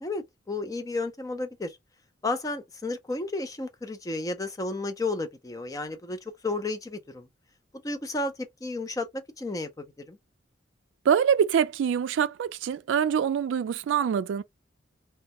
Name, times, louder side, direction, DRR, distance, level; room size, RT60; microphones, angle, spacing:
voice 1, 0.0-1.8 2.2-7.3 7.8-10.2, left 2 dB, 20° left, 0.4 m, -32 dB
voice 2, 11.1-14.4, right 8 dB, 80° right, 0.3 m, -24 dB
2.2 x 2.0 x 2.8 m
head